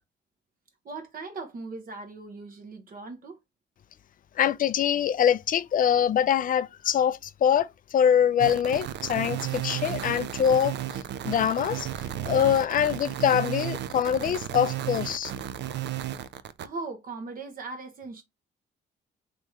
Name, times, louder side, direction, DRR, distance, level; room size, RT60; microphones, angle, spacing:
voice 1, 0.8-3.4 16.6-18.2, right 3 dB, 45° right, 0.9 m, -39 dB
voice 2, 4.4-10.7 11.2-11.9 12.3-15.3, left 9 dB, 45° left, 0.4 m, -24 dB
sound 1, 8.4-16.7, right 12 dB, 60° right, 0.4 m, -33 dB
3.1 x 3.0 x 3.5 m
cardioid pair, 90°, 20 cm